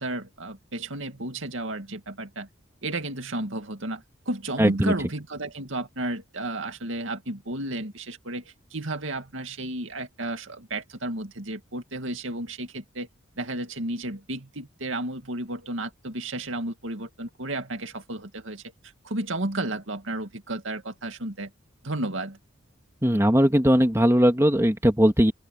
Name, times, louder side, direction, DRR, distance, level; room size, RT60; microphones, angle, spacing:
voice 1, 0.0-2.5 2.8-8.4 8.7-13.1 13.4-18.6 19.0-21.5 21.8-22.4, right 1 dB, 80° right, 2.3 m, -32 dB
voice 2, 4.6-4.9 23.0-25.3, equal, 15° right, 2.0 m, -19 dB
open air
head